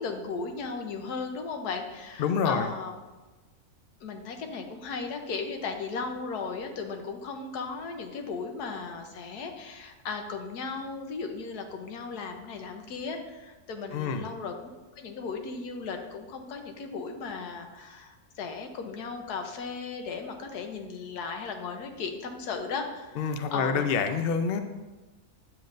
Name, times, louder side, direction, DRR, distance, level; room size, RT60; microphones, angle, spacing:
voice 1, 0.0-2.9 4.0-14.6 14.9-23.9, left 4 dB, 80° left, 5 dB, 1.4 m, -36 dB
voice 2, 2.2-2.7 13.9-14.2 23.2-24.6, left 6 dB, 65° left, 8 dB, 0.5 m, -27 dB
9.8 x 7.4 x 2.6 m, 1.2 s
omnidirectional pair, 1.7 m